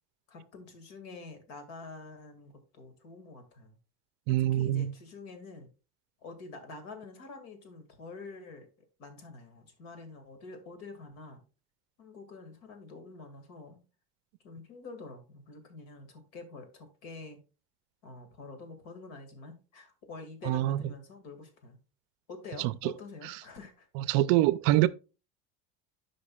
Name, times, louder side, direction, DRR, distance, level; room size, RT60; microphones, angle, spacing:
voice 1, 0.3-3.8 4.3-5.7 6.2-8.7 9.0-11.4 12.0-13.8 14.4-17.4 18.0-21.8 22.3-23.9, left 3 dB, 80° left, 2.1 m, -47 dB
voice 2, 4.3-4.9 20.5-20.8 24.0-24.9, right 15 dB, 60° right, 0.4 m, -24 dB
12.5 x 5.2 x 2.3 m
cardioid pair, 170°, 31 cm